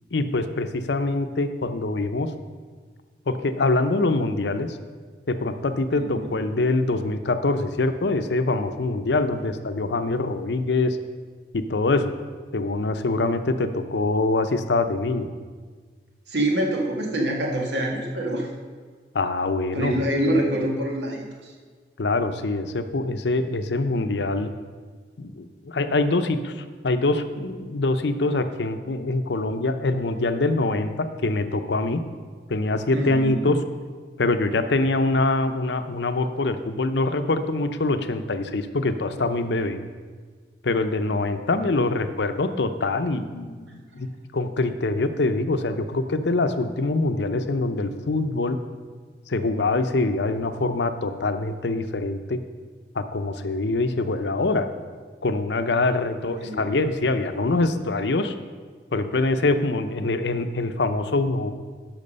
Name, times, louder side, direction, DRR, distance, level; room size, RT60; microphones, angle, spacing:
voice 1, 0.1-2.3 3.3-4.8 5.3-11.0 11.5-12.1 12.5-15.3 19.1-20.0 22.0-24.5 25.2-32.0 32.5-33.6 34.2-39.8 40.6-44.1 44.3-48.6 49.3-52.4 53.0-54.7 55.2-58.3 58.9-61.5, left 2 dB, 80° left, 9 dB, 0.7 m, -24 dB
voice 2, 5.9-6.3 16.3-18.5 19.7-21.5 32.9-33.5 56.4-56.8, right 1 dB, 80° right, 0 dB, 1.7 m, -26 dB
12.5 x 5.9 x 5.3 m, 1.5 s
head